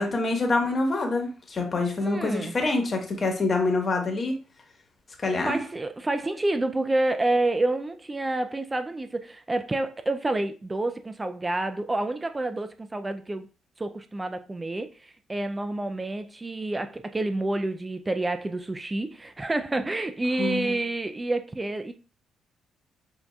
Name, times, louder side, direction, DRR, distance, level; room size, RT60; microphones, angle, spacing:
voice 1, 0.0-4.4 5.2-5.6 20.4-20.8, left 3 dB, 40° left, 1.2 m, -26 dB
voice 2, 2.0-2.6 5.4-13.5 13.8-21.9, right 2 dB, 20° right, 0.3 m, -28 dB
7.0 x 2.6 x 2.3 m
cardioid pair, 90°, 0 cm